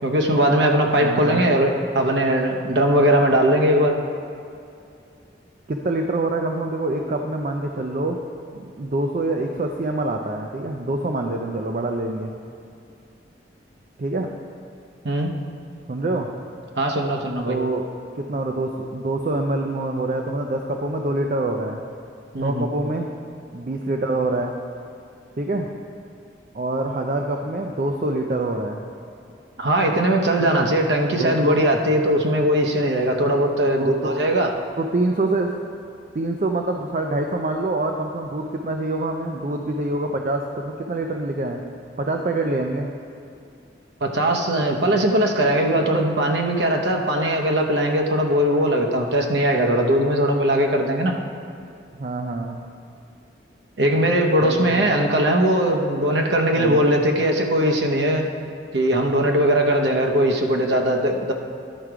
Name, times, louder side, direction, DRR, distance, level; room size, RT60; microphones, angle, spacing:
voice 1, 0.0-4.0 15.0-15.3 16.8-17.6 22.3-22.7 29.6-34.5 44.0-51.1 53.8-58.3 58.7-61.3, right 1 dB, 75° right, 2 dB, 0.8 m, -20 dB
voice 2, 0.9-1.5 5.7-8.2 8.8-12.3 14.0-14.3 15.9-16.3 17.5-17.9 18.2-21.8 22.4-23.1 23.5-24.5 25.4-25.7 26.5-28.8 30.4-30.6 31.1-31.6 33.6-34.3 34.8-35.5 36.1-41.6 42.0-42.9 52.0-52.6 54.4-54.8 56.5-56.8, right 2 dB, 45° right, 2 dB, 0.4 m, -25 dB
11.0 x 4.6 x 4.9 m, 2.5 s
head